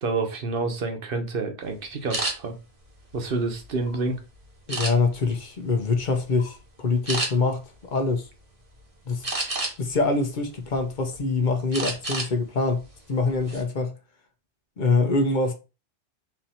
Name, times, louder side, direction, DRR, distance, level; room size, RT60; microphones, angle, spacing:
voice 1, 0.0-2.5 3.1-4.2, right 3 dB, 55° right, 1.0 m, -28 dB
sound 1, 2.1-2.3 3.0-4.0 4.7-5.3 5.8-6.0 6.4-6.6 7.1-7.3 9.2-9.9 10.5-11.2 11.7-12.3 12.7-12.9 13.3-13.6, right 2 dB, 35° right, 1.0 m, -29 dB
voice 2, 4.7-8.3 9.1-9.3 9.8-14.0 14.8-15.5, left 3 dB, 50° left, 0.8 m, -24 dB
4.2 x 2.7 x 4.2 m
omnidirectional pair, 1.2 m